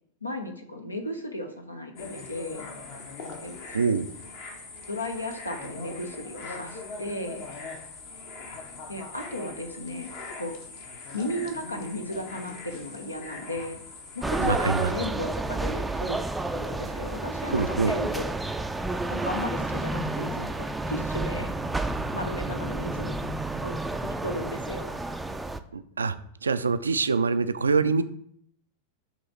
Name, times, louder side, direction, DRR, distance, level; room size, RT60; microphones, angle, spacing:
voice 1, 0.2-2.7 3.4-3.6 4.9-7.4 8.9-10.1 10.4-10.5 11.1-13.8 14.1-16.2 16.5-18.2 19.1-21.5 22.1-23.1 23.6-25.0, left 1 dB, 85° left, 5 dB, 0.8 m, -35 dB
sound 1, 2.0-14.9, left 3 dB, 50° left, 1.0 m, -41 dB
voice 2, 3.7-4.1 14.4-14.9 17.5-17.9 25.7-26.2 26.4-28.0, right 5 dB, 75° right, 12 dB, 0.3 m, -24 dB
sound 2, 14.2-25.6, right 2 dB, 5° right, 0.4 m, -30 dB
7.1 x 3.1 x 4.3 m, 0.67 s
figure-of-eight pair, 90°, 0 cm